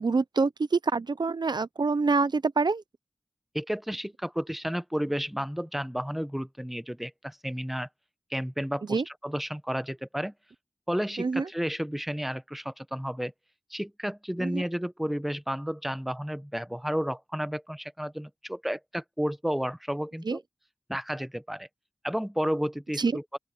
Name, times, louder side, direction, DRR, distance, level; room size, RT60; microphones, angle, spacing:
voice 1, 0.0-2.8 8.9-9.0 11.2-11.5 14.4-14.6 20.3-20.4 23.0-23.2, right 4 dB, 75° right, 0.7 m, -26 dB
voice 2, 3.5-7.9 8.3-10.3 10.9-13.3 13.7-20.4 20.9-21.7 22.0-23.4, equal, ahead, 0.8 m, -32 dB
open air
wide cardioid pair, 40°, 7 cm